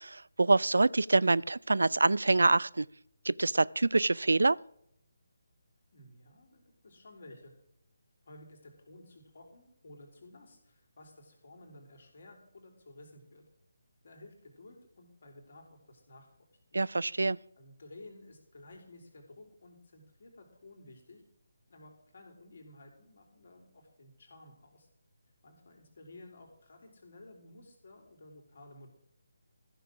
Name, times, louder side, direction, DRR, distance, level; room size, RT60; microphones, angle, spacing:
voice 1, 0.0-2.9 3.3-4.6 16.7-17.4, right 3 dB, 75° right, 0.3 m, -26 dB
voice 2, 5.9-7.5 8.3-13.4 14.0-16.3 16.7-16.8 17.6-21.2 21.7-24.9 25.4-28.9, left 2 dB, 55° left, 3.9 m, -54 dB
14.5 x 6.9 x 6.1 m
figure-of-eight pair, 150°, 0 cm